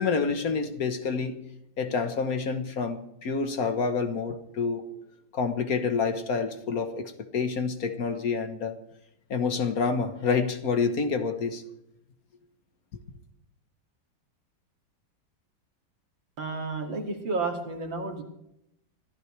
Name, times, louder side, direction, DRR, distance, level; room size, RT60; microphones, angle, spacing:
voice 1, 0.0-1.4 1.8-4.9 5.3-8.8 9.3-11.6, left 5 dB, 55° left, 1.5 m, -28 dB
voice 2, 16.4-18.2, right 3 dB, 85° right, 3.2 m, -31 dB
25.0 x 14.5 x 3.3 m
omnidirectional pair, 2.0 m